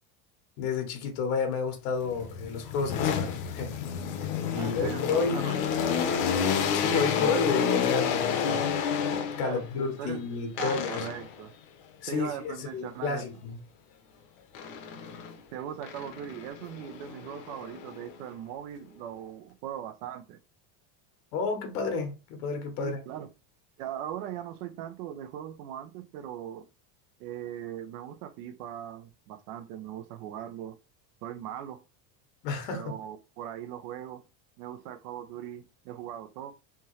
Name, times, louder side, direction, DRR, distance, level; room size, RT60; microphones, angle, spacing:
voice 1, 0.6-3.7 4.5-5.4 6.7-8.7 9.4-11.1 12.0-13.6 21.3-23.0 32.4-32.9, left 5 dB, 90° left, 1.4 m, -31 dB
sound 1, 2.0-9.7 10.6-11.4 14.5-15.4 15.8-18.2, left 7 dB, 55° left, 0.9 m, -30 dB
voice 2, 4.6-6.1 9.4-10.2 10.5-11.5 12.1-13.2 15.5-20.4 22.8-23.3 23.8-26.6 27.2-30.8 31.2-31.8 32.7-34.2 34.6-36.5, right 10 dB, 75° right, 0.8 m, -39 dB
3.5 x 2.8 x 3.1 m
cardioid pair, 175°, 45 cm